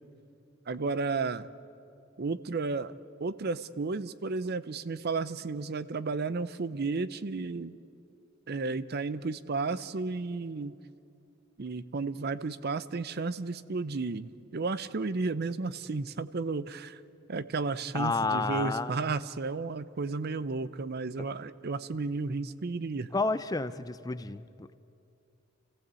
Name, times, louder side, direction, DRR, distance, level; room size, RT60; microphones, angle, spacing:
voice 1, 0.7-1.5 2.2-2.9 3.2-7.7 8.5-10.8 11.6-17.0 17.3-23.1, right 3 dB, 50° right, 15 dB, 0.6 m, -33 dB
voice 2, 17.9-18.9 23.1-24.7, left 3 dB, 20° left, 14 dB, 0.4 m, -30 dB
28.0 x 15.0 x 8.2 m, 2.6 s
head